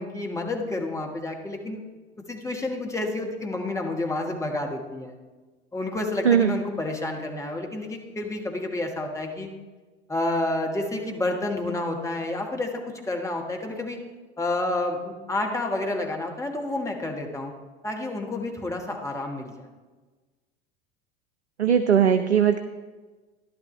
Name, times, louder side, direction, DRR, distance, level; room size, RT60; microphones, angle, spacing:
voice 1, 0.0-1.8 2.3-5.1 5.7-9.5 10.1-12.7 13.1-14.0 14.4-17.5 17.8-19.7, left 2 dB, 10° left, 1 dB, 1.4 m, -29 dB
voice 2, 21.6-22.6, right 8 dB, 85° right, 8 dB, 0.5 m, -19 dB
11.5 x 11.0 x 3.2 m, 1.3 s
figure-of-eight pair, 75°, 33 cm